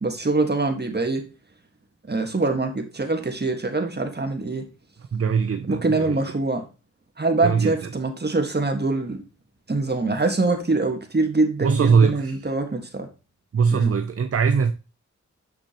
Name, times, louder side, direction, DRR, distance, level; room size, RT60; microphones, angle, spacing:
voice 1, 0.0-1.3 2.1-4.7 5.6-6.6 7.2-9.2 9.7-13.1 13.7-13.9, right 3 dB, 35° right, 1.6 m, -24 dB
voice 2, 5.1-6.2 7.4-7.9 11.6-12.5 13.5-14.7, right 6 dB, 50° right, 0.6 m, -21 dB
6.7 x 5.9 x 2.9 m
cardioid pair, 50°, 30 cm